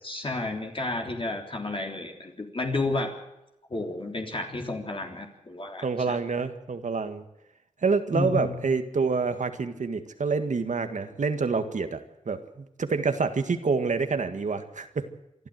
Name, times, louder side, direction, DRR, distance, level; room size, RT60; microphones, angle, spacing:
voice 1, 0.0-3.2 3.7-6.2 8.1-8.6, left 2 dB, 45° left, 1 dB, 3.5 m, -31 dB
voice 2, 5.8-7.2 7.8-12.0 12.3-15.1, right 4 dB, 80° right, 8 dB, 1.9 m, -27 dB
26.5 x 12.5 x 7.9 m, 0.88 s
wide cardioid pair, 75°, 13 cm